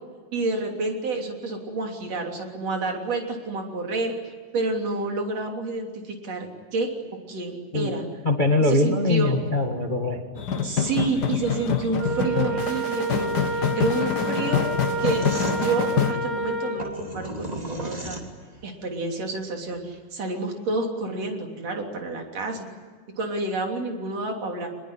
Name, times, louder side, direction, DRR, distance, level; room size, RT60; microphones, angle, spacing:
voice 1, 0.3-4.1 4.5-6.9 7.3-8.1 8.6-9.4 10.6-13.3 13.6-14.7 15.0-15.2 15.5-18.2 18.6-22.7 23.2-24.7, right 3 dB, 50° right, 2 dB, 4.2 m, -29 dB
voice 2, 8.2-10.2, left 2 dB, 25° left, 4 dB, 1.1 m, -22 dB
sound 1, 10.4-16.1, left 7 dB, 50° left, 1.2 m, -26 dB
Wind instrument woodwind instrument, 12.0-16.9, right 2 dB, 80° right, 5.3 m, -29 dB
sound 2, 15.0-18.7, right 1 dB, 15° right, 2.7 m, -35 dB
24.5 x 22.0 x 10.0 m, 1.5 s
omnidirectional pair, 3.8 m